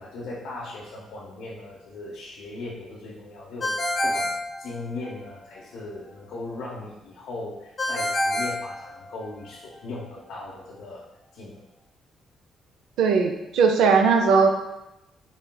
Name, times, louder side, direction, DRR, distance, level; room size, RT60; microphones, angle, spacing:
voice 1, 0.0-4.3 4.6-11.0 11.3-11.6, left 2 dB, 85° left, -6 dB, 0.6 m, -38 dB
Ringtone, 3.6-5.3 7.8-9.5, left 1 dB, 40° left, 0.7 m, -27 dB
voice 2, 13.0-14.5, right 5 dB, 85° right, 4 dB, 0.4 m, -19 dB
4.1 x 3.5 x 2.2 m, 0.92 s
cardioid pair, 90°, 0 cm